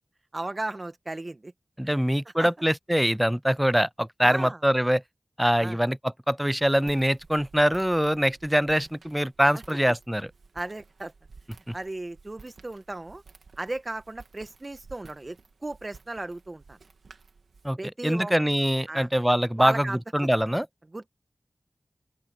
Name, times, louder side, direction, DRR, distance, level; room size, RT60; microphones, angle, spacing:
voice 1, 0.3-1.5 1.8-2.0 2.4-2.5 4.2-4.6 5.6-5.8 10.5-11.1 11.7-13.2 13.6-15.4 15.6-16.8 17.8-18.3 18.9-19.1 19.6-20.0 20.9-21.1, right 2 dB, 40° right, 1.7 m, -35 dB
voice 2, 1.8-5.0 5.4-10.3 11.7-11.8 17.6-17.8 18.0-20.7, equal, 5° right, 0.3 m, -24 dB
Walk footsteps, 6.6-17.7, right 4 dB, 90° right, 2.3 m, -53 dB
open air
cardioid pair, 45°, 0 cm